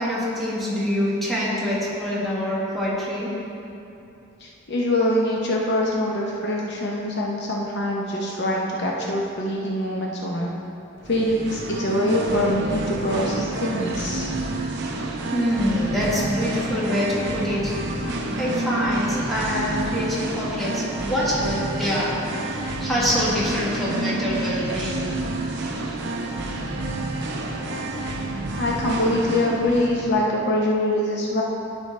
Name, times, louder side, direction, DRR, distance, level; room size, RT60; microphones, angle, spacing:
voice 1, 0.0-3.3 15.3-17.8 18.4-22.1 22.5-25.1, equal, ahead, -8 dB, 1.5 m, -25 dB
voice 2, 4.4-10.5 11.1-14.3 28.6-31.4, left 1 dB, 50° left, -2 dB, 0.7 m, -24 dB
Singing, 11.0-30.1, right 2 dB, 55° right, 0.7 m, -29 dB
11.0 x 5.4 x 3.2 m, 2.8 s
head